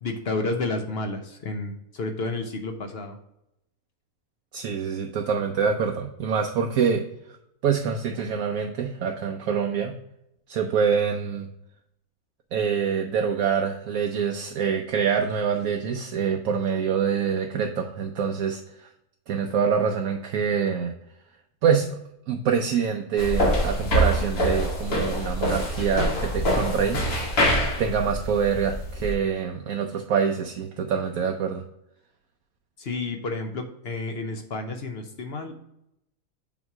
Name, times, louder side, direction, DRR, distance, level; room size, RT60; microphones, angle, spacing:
voice 1, 0.0-3.2 32.8-35.5, left 3 dB, 55° left, 5 dB, 0.8 m, -31 dB
voice 2, 4.5-7.0 7.6-9.9 10.5-11.5 12.5-18.9 19.3-20.9 21.6-22.0 22.3-27.0 27.6-31.6, right 7 dB, 70° right, 3 dB, 1.0 m, -25 dB
sound 1, 23.2-29.1, equal, 85° left, 1.9 m, -25 dB
7.2 x 3.0 x 4.6 m, 0.82 s
omnidirectional pair, 1.6 m